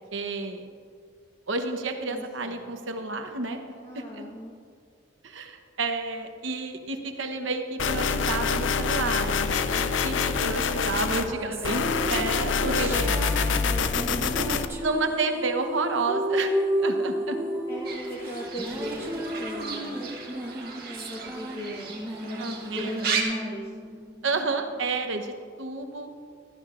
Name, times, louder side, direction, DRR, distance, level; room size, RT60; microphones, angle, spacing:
voice 1, 0.1-0.7 1.5-3.6 3.9-4.2 5.2-13.3 14.8-17.4 22.4-23.1 24.2-26.1, right 3 dB, 80° right, 6 dB, 1.0 m, -30 dB
voice 2, 2.0-2.7 3.8-4.6 13.4-14.8 17.7-20.0 20.9-23.7, equal, 30° left, -5 dB, 1.5 m, -38 dB
sound 1, 7.8-11.3 11.6-14.6, left 5 dB, 70° left, 0.5 m, -26 dB
sound 2, 11.3-24.7, right 1 dB, 15° right, 0.9 m, -33 dB
Fowl / Bird, 17.8-23.2, right 6 dB, 55° right, 1.7 m, -35 dB
16.0 x 13.0 x 2.5 m, 2.1 s
head